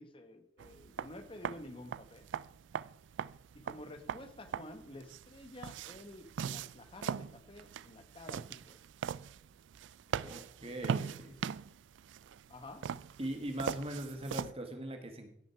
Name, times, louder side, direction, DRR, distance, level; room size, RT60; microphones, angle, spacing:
voice 1, 0.0-2.3 3.5-8.8 10.1-10.4 10.7-11.0 11.2-11.4 12.5-12.8, left 1 dB, 30° left, 8 dB, 1.2 m, -50 dB
sound 1, 0.6-14.5, right 7 dB, 85° right, 0.4 m, -41 dB
voice 2, 10.2-11.3 13.2-15.3, right 1 dB, 30° right, 5 dB, 1.8 m, -40 dB
16.5 x 6.5 x 4.6 m, 0.73 s
head